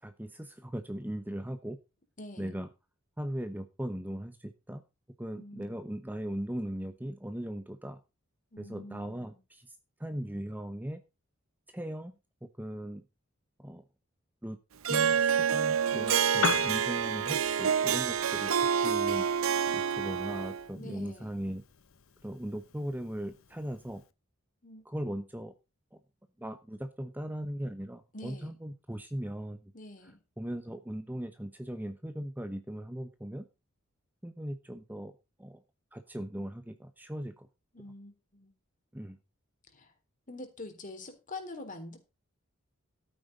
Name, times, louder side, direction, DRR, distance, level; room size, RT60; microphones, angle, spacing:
voice 1, 0.0-1.8 2.4-2.7 3.2-4.8 5.2-8.0 8.6-9.7 10.0-11.0 11.7-13.0 13.6-13.8 14.4-14.6 14.9-18.5 18.8-19.3 19.7-21.6 22.2-24.0 24.8-25.5 26.4-29.7 30.0-33.4 34.2-35.1 35.4-35.6 35.9-37.5 38.9-39.2, equal, 10° right, 9 dB, 1.0 m, -38 dB
voice 2, 2.2-2.5 5.4-5.8 8.5-9.4 20.8-21.3 24.6-24.8 28.1-28.5 29.7-30.2 37.7-38.5 39.7-39.9 40.3-42.0, left 2 dB, 40° left, 6 dB, 3.8 m, -45 dB
Harp, 14.8-20.7, right 7 dB, 85° right, 0.7 m, -28 dB
Piano, 16.3-24.1, left 6 dB, 80° left, 1.0 m, -41 dB
13.0 x 9.1 x 4.1 m, 0.28 s
head